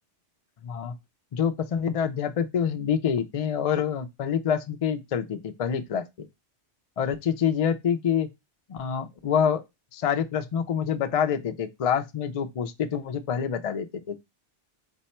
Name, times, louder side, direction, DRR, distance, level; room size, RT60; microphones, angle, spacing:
voice 1, 0.6-0.9 1.3-6.3 7.0-8.3 8.7-9.6 9.9-14.2, left 7 dB, 65° left, 0.3 m, -26 dB
4.4 x 2.2 x 4.1 m
omnidirectional pair, 1.2 m